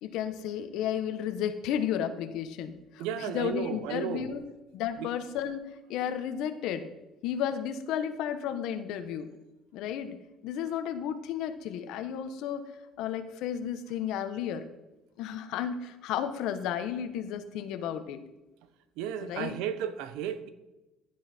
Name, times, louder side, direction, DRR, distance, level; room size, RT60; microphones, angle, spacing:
voice 1, 0.0-4.4 4.7-6.9 7.2-9.3 9.7-10.2 10.4-12.7 13.0-14.7 15.2-18.2 19.2-19.5, left 9 dB, 65° left, 1.5 m, -33 dB
voice 2, 3.0-4.3 5.0-5.1 19.0-20.5, right 9 dB, 85° right, 1.3 m, -34 dB
16.0 x 11.0 x 4.6 m
cardioid pair, 170°, 0 cm